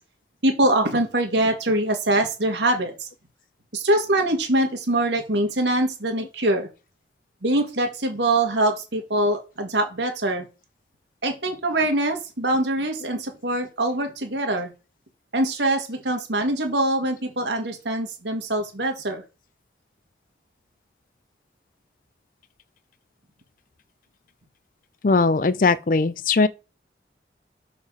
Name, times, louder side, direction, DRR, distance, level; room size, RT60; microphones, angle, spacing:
voice 1, 0.4-3.1 3.7-6.7 7.4-10.5 11.2-14.7 15.3-19.2, right 1 dB, 85° right, 2.0 m, -23 dB
voice 2, 25.0-26.5, left 4 dB, 50° left, 0.5 m, -19 dB
6.5 x 4.9 x 4.9 m
head